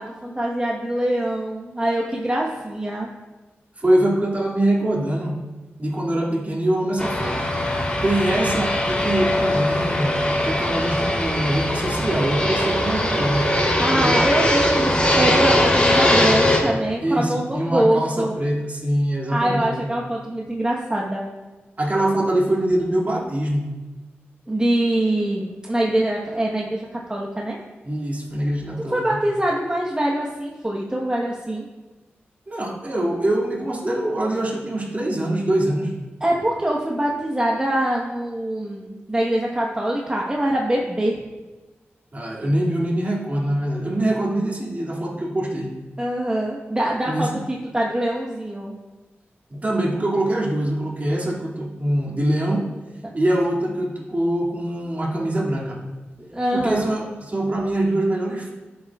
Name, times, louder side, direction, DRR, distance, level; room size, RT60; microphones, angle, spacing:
voice 1, 0.0-3.1 13.8-18.4 19.3-21.3 24.5-27.6 28.9-31.6 36.2-41.2 46.0-48.8 56.2-56.8, right 1 dB, 20° right, -2 dB, 1.2 m, -24 dB
voice 2, 3.8-5.4 5.8-7.4 8.0-13.5 13.9-14.2 17.0-19.7 21.8-23.7 27.8-29.0 32.5-35.9 42.1-45.7 47.0-47.4 49.5-52.7 53.1-55.8 56.5-58.5, right 1 dB, 40° right, -3 dB, 2.4 m, -23 dB
Fixed-wing aircraft airplane, 7.0-16.6, left 1 dB, 25° left, 3.2 m, -20 dB
13.0 x 7.8 x 2.4 m, 1.2 s
cardioid pair, 70°, 4 cm